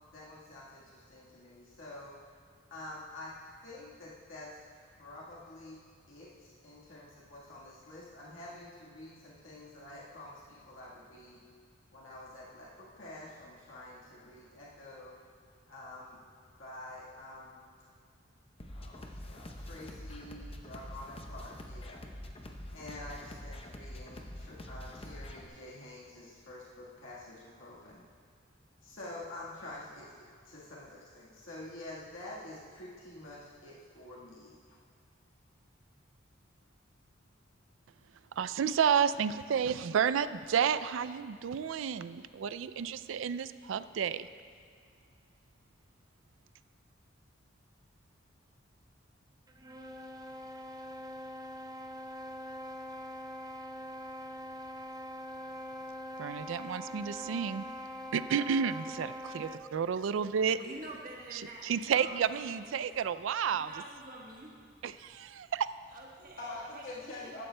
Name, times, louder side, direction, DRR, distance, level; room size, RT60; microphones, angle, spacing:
voice 1, 0.1-2.1 2.7-11.4 11.9-15.2 15.7-16.2 16.6-17.6 18.7-22.0 22.7-28.1 28.8-34.8 66.4-67.4, left 1 dB, 80° left, -6 dB, 1.6 m, -48 dB
sound 1, 18.6-25.4, left 1 dB, 30° left, 0.7 m, -45 dB
voice 2, 38.4-44.3 56.2-57.7 58.1-60.6 61.3-63.7 64.8-65.7, right 7 dB, 70° right, 14 dB, 0.4 m, -31 dB
sound 2, 49.5-59.8, equal, 20° right, 0.6 m, -43 dB
voice 3, 60.6-62.8 63.5-64.6 65.9-67.4, right 2 dB, 45° right, -2 dB, 1.3 m, -47 dB
15.0 x 12.0 x 2.2 m, 2.3 s
head